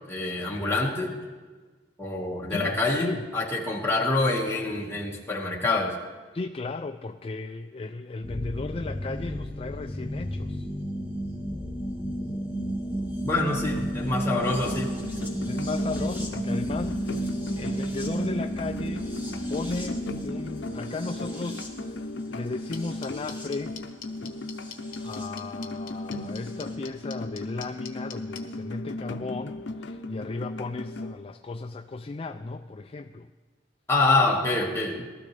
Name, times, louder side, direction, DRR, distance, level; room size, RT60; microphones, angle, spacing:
voice 1, 0.1-1.2 2.0-6.0 13.2-14.9 33.9-35.1, left 2 dB, 15° left, -2 dB, 1.8 m, -26 dB
voice 2, 2.5-3.2 6.3-10.7 13.8-13.9 15.5-19.1 19.5-23.8 25.0-33.3, left 3 dB, 35° left, 7 dB, 0.4 m, -35 dB
sound 1, 8.2-25.3 26.4-26.5, right 1 dB, 10° right, 2.3 m, -33 dB
sound 2, 14.3-31.1, left 2 dB, 90° left, 0.7 m, -36 dB
sound 3, 22.7-28.4, left 8 dB, 50° left, 1.4 m, -41 dB
18.0 x 13.5 x 3.4 m, 1.4 s
head